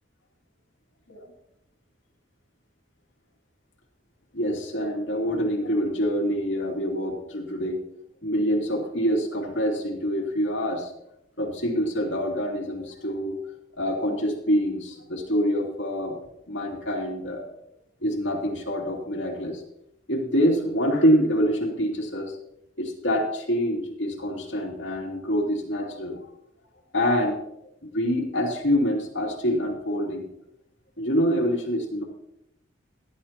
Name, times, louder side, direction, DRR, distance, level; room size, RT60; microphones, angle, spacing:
voice 1, 4.3-7.8 8.2-10.9 11.4-13.4 13.7-16.2 16.5-17.5 18.0-19.6 20.1-22.4 22.8-26.3 26.9-27.4 27.8-30.3 31.0-32.0, equal, 70° left, 0 dB, 2.7 m, -26 dB
17.5 x 11.5 x 2.9 m, 0.82 s
head